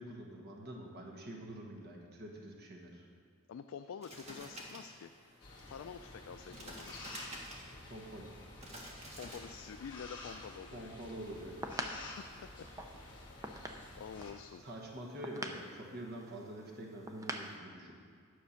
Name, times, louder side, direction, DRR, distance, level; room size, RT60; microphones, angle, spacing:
voice 1, 0.0-3.0 7.9-8.3 10.7-11.7 14.6-18.0, right 1 dB, 50° right, 0 dB, 1.2 m, -46 dB
voice 2, 3.5-5.1 5.7-7.0 9.2-10.9 11.9-12.7 14.0-14.7, left 7 dB, 70° left, 8 dB, 0.3 m, -48 dB
sound 1, 4.0-10.3, right 1 dB, 30° right, 1.5 m, -51 dB
sound 2, 5.4-14.3, left 2 dB, 25° left, 1.6 m, -51 dB
sound 3, 11.2-17.6, right 1 dB, 15° right, 0.6 m, -45 dB
9.7 x 6.7 x 5.7 m, 2.1 s
head